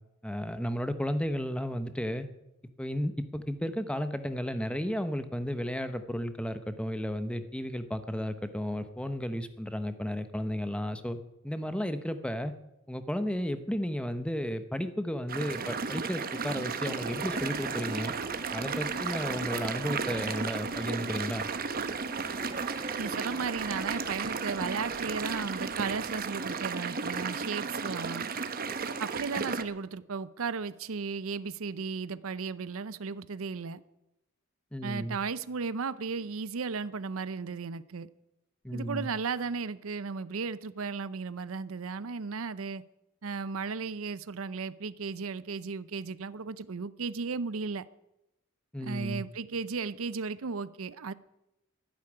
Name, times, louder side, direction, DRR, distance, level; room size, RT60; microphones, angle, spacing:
voice 1, 0.2-2.3 2.8-11.2 11.4-12.5 12.9-18.1 18.5-21.4 34.7-35.2 38.6-39.1 48.7-49.2, equal, 5° left, 10 dB, 0.9 m, -33 dB
sound 1, 15.3-29.6, right 5 dB, 45° right, 1.0 m, -34 dB
sound 2, 16.9-26.2, right 1 dB, 15° right, 1.8 m, -47 dB
voice 2, 23.0-28.3 29.0-33.8 34.8-38.1 38.7-42.8 43.2-47.8 48.8-51.1, right 5 dB, 70° right, 16 dB, 0.6 m, -35 dB
12.5 x 11.5 x 9.8 m, 0.91 s
head